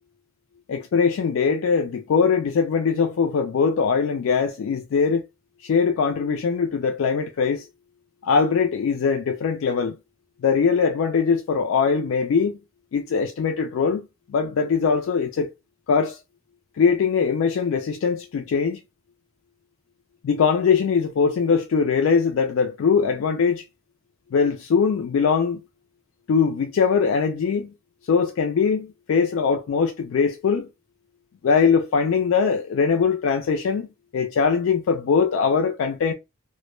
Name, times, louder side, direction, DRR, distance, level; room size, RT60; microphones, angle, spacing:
voice 1, 0.7-5.2 5.6-7.7 8.2-10.0 10.4-12.6 12.9-15.5 15.9-16.2 16.7-18.8 20.2-23.6 24.3-25.6 26.3-27.7 28.0-30.7 31.4-33.9 34.1-36.1, left 5 dB, 80° left, 0.3 m, -21 dB
2.1 x 2.0 x 3.0 m
head